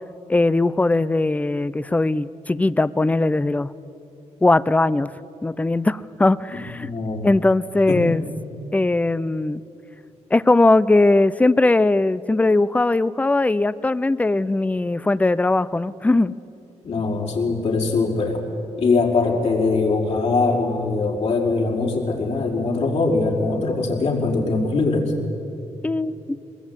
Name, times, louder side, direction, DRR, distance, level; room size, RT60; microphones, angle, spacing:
voice 1, 0.3-3.7 4.4-5.1 5.4-6.9 7.2-8.3 8.7-9.6 10.3-16.3 25.8-26.4, left 2 dB, 10° left, 18 dB, 0.5 m, -19 dB
voice 2, 6.8-7.3 7.9-8.2 16.8-18.4 18.8-25.1, left 3 dB, 60° left, -2 dB, 5.4 m, -22 dB
22.5 x 21.5 x 9.8 m, 2.8 s
cardioid pair, 120°, 12 cm